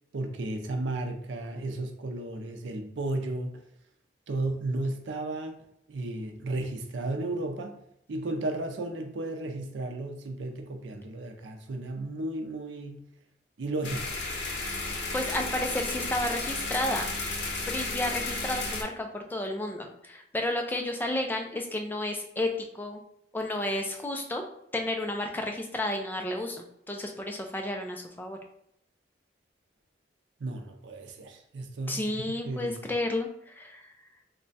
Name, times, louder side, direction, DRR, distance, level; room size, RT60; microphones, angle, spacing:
voice 1, 0.1-3.6 4.3-5.6 5.9-7.8 8.1-13.0 13.6-14.2 30.4-32.1 32.4-32.8, right 2 dB, 90° right, 5 dB, 0.5 m, -34 dB
sound 1, 13.8-18.8, left 3 dB, 75° left, 0.7 m, -33 dB
voice 2, 14.9-17.1 17.6-23.0 23.3-24.4 24.7-28.4 31.9-33.9, left 1 dB, 10° left, 3 dB, 0.3 m, -32 dB
3.2 x 2.2 x 3.9 m, 0.74 s
head